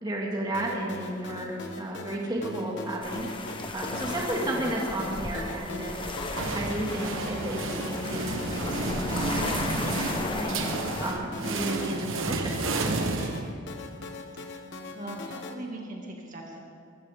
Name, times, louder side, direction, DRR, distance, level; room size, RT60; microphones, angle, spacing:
voice 1, 0.0-3.3 3.7-6.0 6.5-10.6 11.0-12.6, right 1 dB, 20° right, -3 dB, 2.0 m, -33 dB
sound 1, 0.5-15.5, left 2 dB, 60° left, 1.3 m, -41 dB
sound 2, 3.0-11.1, left 2 dB, 25° left, 1.1 m, -35 dB
sound 3, 6.0-13.9, right 3 dB, 75° right, 1.2 m, -32 dB
voice 2, 13.2-13.6 14.9-16.6, right 1 dB, 40° right, -1 dB, 2.1 m, -40 dB
23.0 x 14.5 x 3.6 m, 2.4 s
head